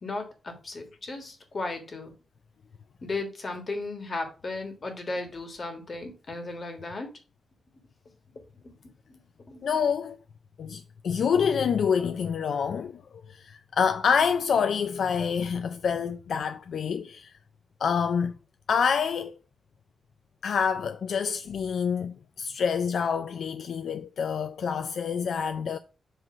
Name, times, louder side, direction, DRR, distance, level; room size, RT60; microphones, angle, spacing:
voice 1, 0.0-2.1 3.0-7.1 9.1-9.2 9.5-9.6, left 3 dB, 35° left, 1.5 m, -35 dB
voice 2, 9.6-10.2 10.6-13.0 13.3-17.4 17.8-18.3 18.7-19.4 20.4-25.8, left 6 dB, 65° left, 0.4 m, -27 dB
7.5 x 3.2 x 5.8 m
wide cardioid pair, 180°, 0 cm